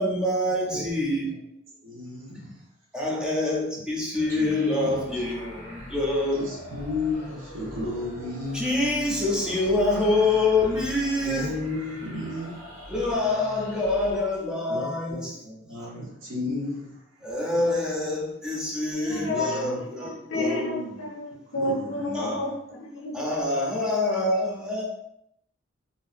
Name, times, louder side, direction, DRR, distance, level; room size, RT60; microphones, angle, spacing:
voice 1, 0.0-1.5 2.9-6.4 8.5-11.5 12.9-15.3 17.2-20.7 22.1-22.5 23.1-24.9, left 2 dB, 5° right, -2 dB, 0.5 m, -26 dB
voice 2, 1.8-2.6 4.3-5.2 6.3-8.7 11.2-12.8 14.7-17.6 19.0-19.8 20.3-21.1 21.5-22.5, left 2 dB, 90° right, -5 dB, 0.8 m, -34 dB
sound 1, 4.1-14.7, equal, 50° right, 1.0 m, -42 dB
voice 3, 18.9-23.2, left 1 dB, 75° left, 1 dB, 0.5 m, -31 dB
2.7 x 2.2 x 2.4 m, 0.75 s
head